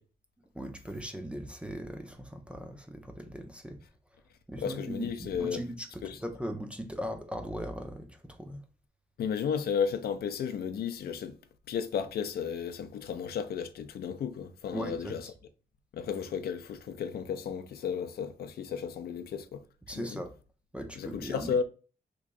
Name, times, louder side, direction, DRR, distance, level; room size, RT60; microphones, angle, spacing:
voice 1, 0.5-3.8 4.5-8.6 14.7-15.2 19.9-20.3 20.7-21.6, equal, 5° right, 0.3 m, -39 dB
voice 2, 4.6-5.6 6.0-6.2 9.2-11.4 11.7-15.2 15.9-19.6 20.0-20.2 21.0-21.6, left 7 dB, 70° left, 0.4 m, -33 dB
3.0 x 2.5 x 3.5 m
wide cardioid pair, 170°, 17 cm